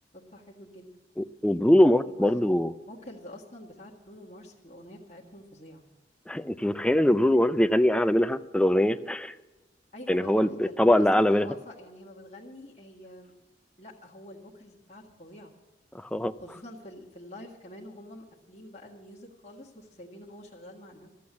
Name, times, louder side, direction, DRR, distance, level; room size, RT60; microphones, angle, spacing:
voice 1, 0.3-0.9 2.2-2.4 2.9-5.8 9.9-13.3 13.8-15.5 16.4-21.1, left 1 dB, 35° left, -3 dB, 1.7 m, -46 dB
voice 2, 1.2-2.7 6.3-9.3 10.1-11.5 15.9-16.3, left 1 dB, 5° left, 11 dB, 0.4 m, -22 dB
13.0 x 8.4 x 8.5 m, 1.1 s
head